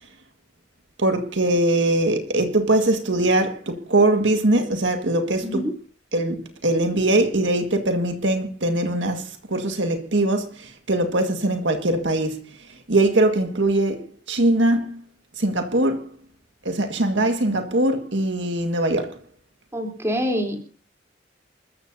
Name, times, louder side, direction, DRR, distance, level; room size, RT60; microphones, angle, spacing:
voice 1, 1.0-5.7 6.1-12.5 12.9-15.0 15.4-16.1 16.6-19.2, right 1 dB, 80° right, 1.8 m, -21 dB
voice 2, 5.4-5.7 19.7-20.7, equal, 15° right, 3.6 m, -26 dB
28.0 x 14.0 x 2.8 m
head